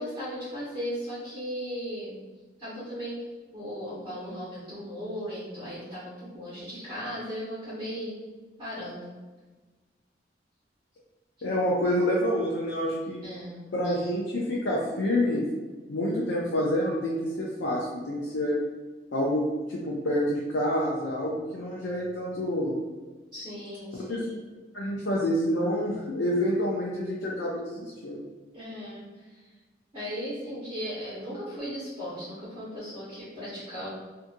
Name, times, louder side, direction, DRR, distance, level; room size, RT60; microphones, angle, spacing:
voice 1, 0.0-2.2 2.6-3.2 3.5-8.2 8.6-9.1 13.2-13.6 23.3-24.3 28.5-29.5 29.9-33.9, equal, 25° right, -12 dB, 1.0 m, -37 dB
voice 2, 11.4-13.2 13.7-15.4 15.9-18.6 19.1-22.8 24.1-24.2 24.7-28.2, equal, 85° left, -4 dB, 0.5 m, -27 dB
2.6 x 2.5 x 2.6 m, 1.3 s
head